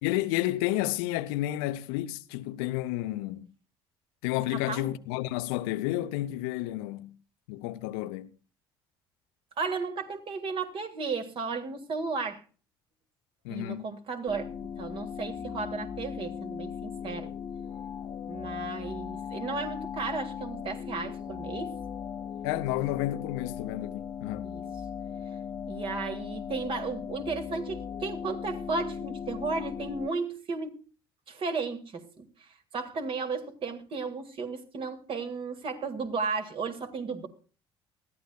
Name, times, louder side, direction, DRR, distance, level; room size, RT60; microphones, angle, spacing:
voice 1, 0.0-3.5 4.2-7.1 7.5-8.3 13.4-13.9 22.4-24.5, left 16 dB, 70° left, 0.6 m, -31 dB
voice 2, 4.5-4.9 9.6-12.4 13.5-14.5 14.8-17.3 18.3-21.8 24.4-24.7 25.7-30.8 31.3-32.5 32.7-37.3, right 4 dB, 45° right, 1.9 m, -34 dB
sound 1, 14.3-30.1, left 7 dB, 30° left, 0.7 m, -38 dB
20.0 x 14.0 x 2.3 m
figure-of-eight pair, 55°, 13 cm